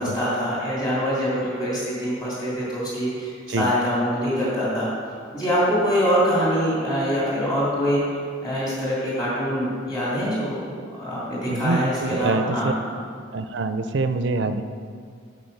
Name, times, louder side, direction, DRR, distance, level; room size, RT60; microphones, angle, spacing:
voice 1, 0.0-4.9 5.3-8.0 8.4-12.7, equal, 20° left, -8 dB, 2.9 m, -24 dB
voice 2, 11.5-12.7 13.3-14.6, right 3 dB, 70° right, 9 dB, 0.5 m, -25 dB
9.0 x 7.6 x 5.5 m, 2.2 s
head